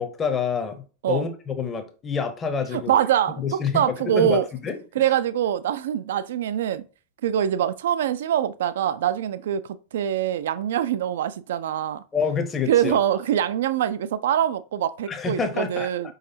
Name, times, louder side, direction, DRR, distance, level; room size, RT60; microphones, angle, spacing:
voice 1, 0.0-2.9 3.4-4.8 12.1-13.0 15.1-15.9, left 6 dB, 20° left, 0.8 m, -27 dB
voice 2, 2.7-4.5 5.0-6.8 7.2-12.0 12.7-16.1, right 10 dB, 60° right, 0.3 m, -24 dB
4.9 x 3.9 x 2.7 m
figure-of-eight pair, 90°, 0 cm